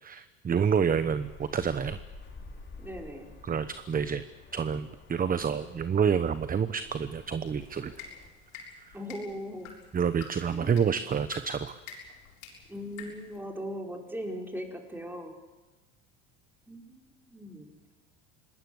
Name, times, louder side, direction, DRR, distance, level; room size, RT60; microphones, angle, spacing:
voice 1, 0.0-2.0 3.4-4.3 4.5-7.9 8.9-9.0 9.9-11.8, right 6 dB, 25° right, 13 dB, 0.9 m, -28 dB
sound 1, 0.9-8.3, left 3 dB, 30° left, 5.3 m, -50 dB
voice 2, 2.8-3.3 8.9-9.7 10.5-10.7 12.7-15.3 16.7-17.9, equal, 5° right, 2 dB, 4.6 m, -39 dB
sound 2, 7.6-13.4, left 6 dB, 80° left, 7.0 m, -49 dB
24.5 x 19.5 x 8.0 m, 1.2 s
supercardioid pair, 95°, 37 cm